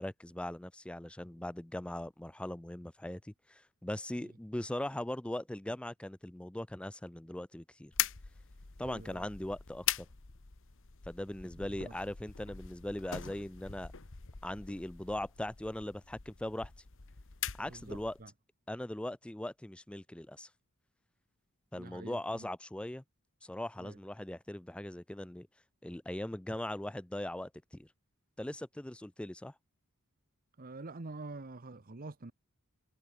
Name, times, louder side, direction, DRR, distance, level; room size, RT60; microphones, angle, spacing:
voice 1, 0.0-7.9 8.8-10.1 11.1-13.9 14.4-16.7 17.6-18.2 18.7-20.5 21.7-23.0 23.4-25.5 25.8-27.9 28.4-29.5, left 1 dB, 5° left, 0.4 m, -40 dB
sound 1, 7.9-18.3, left 11 dB, 60° left, 1.3 m, -42 dB
voice 2, 8.8-9.2 11.5-11.9 17.7-18.3 21.8-22.5 23.8-24.0 30.6-32.3, right 3 dB, 40° right, 1.0 m, -47 dB
head